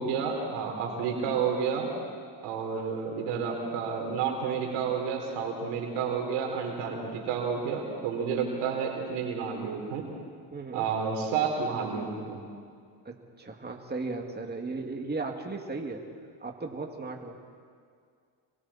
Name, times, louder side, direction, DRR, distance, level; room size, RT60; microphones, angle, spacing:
voice 1, 0.0-1.9 2.4-10.1 10.7-12.4, right 6 dB, 85° right, 1 dB, 3.8 m, -30 dB
voice 2, 10.5-10.9 13.0-16.0 16.4-17.4, right 3 dB, 20° right, 2 dB, 2.4 m, -36 dB
27.0 x 23.0 x 4.3 m, 2.2 s
supercardioid pair, 75°, 50 cm